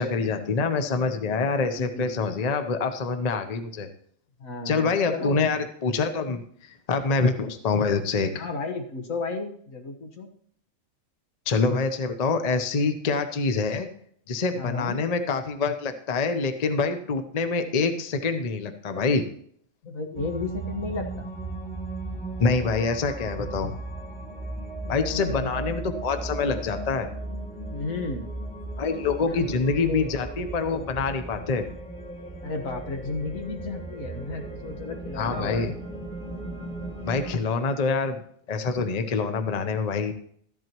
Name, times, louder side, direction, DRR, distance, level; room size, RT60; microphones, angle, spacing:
voice 1, 0.0-3.9 4.6-8.5 11.5-13.9 14.3-19.3 22.4-23.7 24.9-27.1 28.8-31.6 35.2-35.7 37.0-38.2 38.5-40.1, left 4 dB, 35° left, 8 dB, 0.7 m, -26 dB
voice 2, 1.8-2.1 4.4-5.5 8.3-10.3 14.5-15.0 19.8-21.3 24.8-25.7 27.7-28.3 29.2-30.2 32.4-35.7, left 3 dB, 75° left, 3 dB, 1.8 m, -33 dB
sound 1, 20.1-37.3, right 2 dB, 5° left, 2.2 m, -36 dB
13.5 x 11.0 x 3.0 m, 0.65 s
omnidirectional pair, 1.4 m